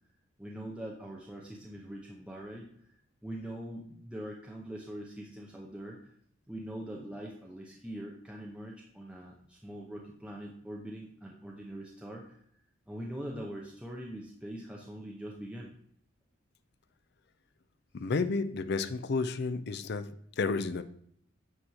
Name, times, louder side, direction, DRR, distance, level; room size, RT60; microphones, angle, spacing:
voice 1, 0.4-2.7 3.2-6.1 6.5-12.4 12.9-15.7, right 1 dB, 5° right, -2 dB, 0.7 m, -43 dB
voice 2, 17.9-20.8, left 4 dB, 50° left, 12 dB, 0.5 m, -31 dB
8.7 x 3.1 x 5.5 m, 0.66 s
head